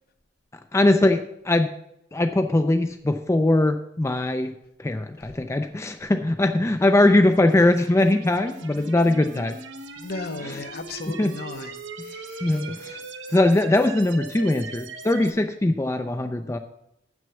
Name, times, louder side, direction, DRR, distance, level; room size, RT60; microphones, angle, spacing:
voice 1, 0.7-1.7 2.1-4.5 4.8-9.6 10.4-10.6 11.1-11.4 12.4-13.0 13.3-16.6, left 1 dB, 15° left, 7 dB, 0.4 m, -21 dB
sound 1, 7.3-15.3, right 4 dB, 75° right, 1.0 m, -40 dB
voice 2, 10.0-11.7 12.0-12.6, left 3 dB, 55° left, 9 dB, 0.8 m, -36 dB
8.0 x 6.2 x 6.9 m, 0.79 s
head